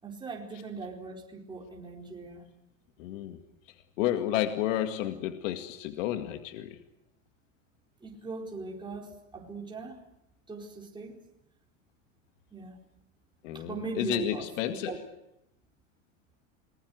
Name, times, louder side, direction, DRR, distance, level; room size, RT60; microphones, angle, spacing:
voice 1, 0.0-2.5 8.0-10.0 10.5-11.2 12.5-12.8 13.5-15.0, right 4 dB, 10° right, -1 dB, 4.5 m, -39 dB
voice 2, 3.0-3.4 4.0-6.8 13.4-15.0, left 12 dB, 70° left, 7 dB, 2.1 m, -31 dB
28.0 x 21.0 x 8.0 m, 0.85 s
hypercardioid pair, 110°, 40 cm